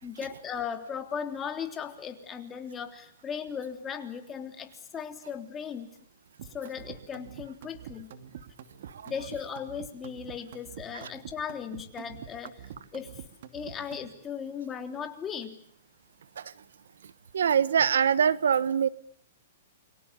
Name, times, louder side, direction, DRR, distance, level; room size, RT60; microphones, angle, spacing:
voice 1, 0.0-5.9 6.5-8.1 9.1-13.2 13.5-15.6, left 7 dB, 20° left, 6 dB, 3.4 m, -37 dB
sound 1, 6.4-14.1, right 9 dB, 65° right, 2.7 m, -45 dB
voice 2, 17.3-18.9, right 7 dB, 85° right, 18 dB, 1.2 m, -23 dB
29.5 x 24.5 x 7.0 m, 0.64 s
hypercardioid pair, 140°, 0 cm